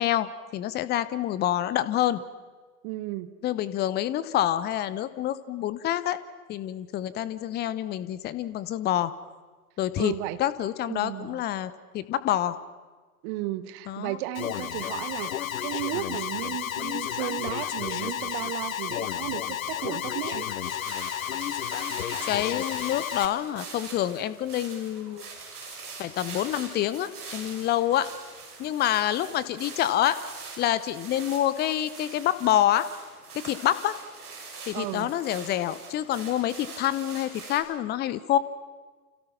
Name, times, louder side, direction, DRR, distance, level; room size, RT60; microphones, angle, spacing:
voice 1, 0.0-2.2 3.4-6.2 6.5-9.1 9.8-10.1 10.4-12.6 13.9-14.2 22.3-25.3 26.0-28.1 28.6-30.2 30.6-32.9 33.3-34.0 34.7-38.4, left 12 dB, 20° left, 16 dB, 1.0 m, -27 dB
voice 2, 2.8-3.3 10.0-10.4 10.9-11.4 13.2-20.5 34.7-35.1, right 16 dB, 35° right, 12 dB, 1.6 m, -34 dB
Alarm, 14.3-23.3, left 10 dB, 60° left, 1.2 m, -32 dB
sound 1, 20.4-37.6, right 4 dB, 70° right, 6.5 m, -43 dB
30.0 x 28.0 x 5.9 m, 1.4 s
figure-of-eight pair, 100°, 47 cm